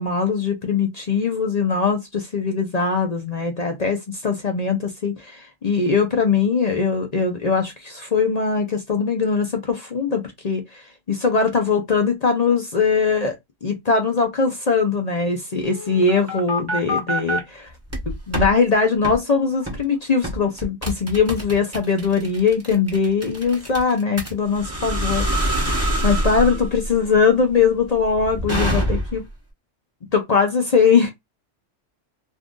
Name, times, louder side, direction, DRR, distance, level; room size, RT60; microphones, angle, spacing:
voice 1, 0.0-17.7 18.1-29.2 30.1-31.1, left 5 dB, 45° left, 0.5 m, -21 dB
sound 1, 15.6-17.4 17.9-18.5 19.0-19.2 19.7-19.9 20.2-29.3, equal, 15° right, 0.9 m, -25 dB
2.6 x 2.5 x 3.5 m
omnidirectional pair, 1.3 m